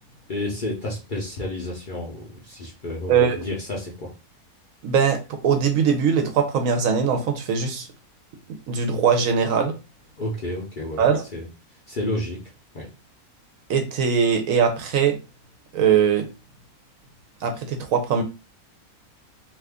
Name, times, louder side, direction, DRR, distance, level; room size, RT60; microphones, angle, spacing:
voice 1, 0.3-4.1 10.2-11.0 11.3-11.5 11.9-12.4 12.7-12.9, left 1 dB, 45° left, 0.7 m, -30 dB
voice 2, 4.8-7.9 8.7-9.7 11.0-11.2 13.7-15.2 15.7-16.3 17.4-18.2, right 7 dB, 70° right, 0.9 m, -21 dB
2.7 x 2.4 x 3.4 m
omnidirectional pair, 1.6 m